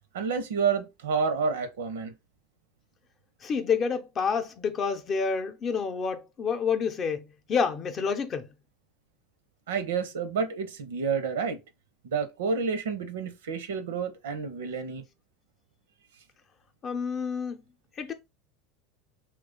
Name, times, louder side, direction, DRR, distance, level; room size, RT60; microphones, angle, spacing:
voice 1, 0.1-2.1 9.7-11.6 12.0-15.0, right 5 dB, 85° right, 0.6 m, -29 dB
voice 2, 3.4-8.5 16.8-17.6 18.0-18.1, left 6 dB, 35° left, 0.6 m, -28 dB
3.0 x 2.3 x 3.7 m
hypercardioid pair, 105°, 0 cm